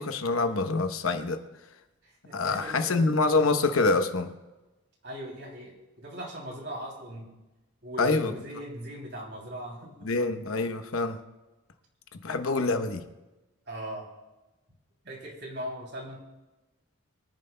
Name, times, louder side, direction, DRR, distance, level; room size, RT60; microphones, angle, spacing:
voice 1, 0.0-1.4 2.3-4.3 8.0-8.3 10.0-11.2 12.2-13.0, left 3 dB, 90° left, 8 dB, 0.9 m, -26 dB
voice 2, 2.0-3.1 3.4-3.7 5.0-7.3 7.8-10.1 13.7-14.1 15.0-16.2, right 1 dB, 55° right, -1 dB, 3.0 m, -40 dB
23.5 x 10.5 x 2.2 m, 1.1 s
head